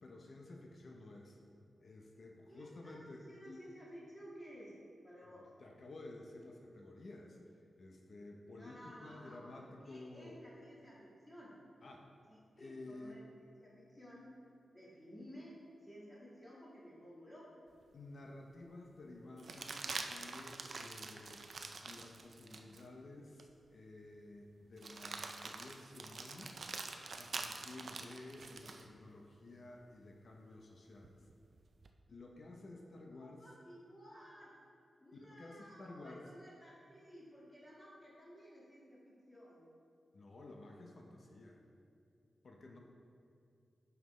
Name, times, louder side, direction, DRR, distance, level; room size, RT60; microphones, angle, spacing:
voice 1, 0.0-1.4 1.8-3.6 5.6-7.4 7.8-10.4 11.8-12.1 12.6-13.2 17.9-21.5 21.8-26.6 27.2-31.2 32.1-33.5 35.1-36.2 40.1-41.6 42.4-42.8, left 2 dB, 60° left, 1 dB, 0.8 m, -53 dB
voice 2, 2.5-4.7 5.0-5.5 8.5-11.6 12.3-14.4 14.7-17.5 33.1-34.5 35.0-39.7, equal, 15° left, -7 dB, 1.7 m, -55 dB
Plastic bag crinkle and crumple, 17.8-17.9 19.4-22.8 23.4-23.5 24.8-28.9 31.0-31.9, right 3 dB, 55° right, 0.5 m, -46 dB
9.0 x 5.8 x 3.2 m, 2.4 s
wide cardioid pair, 90°, 0 cm